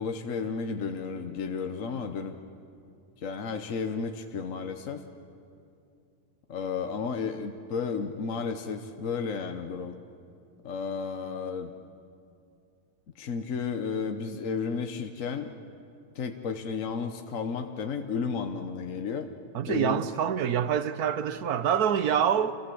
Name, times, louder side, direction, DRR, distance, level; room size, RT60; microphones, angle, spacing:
voice 1, 0.0-2.3 3.2-5.0 6.5-10.0 10.6-11.7 13.2-15.5 16.1-19.3 19.7-20.0, left 5 dB, 55° left, 1.3 m, -32 dB
voice 2, 19.5-22.5, right 8 dB, 70° right, 1.4 m, -26 dB
28.5 x 23.0 x 7.8 m
omnidirectional pair, 1.7 m